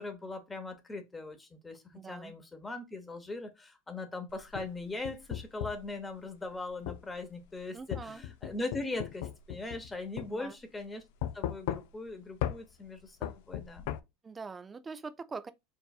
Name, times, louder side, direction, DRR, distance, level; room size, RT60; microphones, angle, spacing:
voice 1, 0.0-11.0 11.3-14.0, left 2 dB, 15° left, 0.8 m, -40 dB
voice 2, 1.9-2.3 7.7-8.2 10.2-10.6 14.2-15.5, right 4 dB, 20° right, 0.3 m, -43 dB
sound 1, 4.3-5.9 6.9-7.0 7.9-9.9 10.2-10.3 11.2-12.1 12.4-12.6 13.2-14.0, left 12 dB, 70° left, 0.3 m, -36 dB
4.6 x 2.5 x 2.3 m
hypercardioid pair, 95°, 0 cm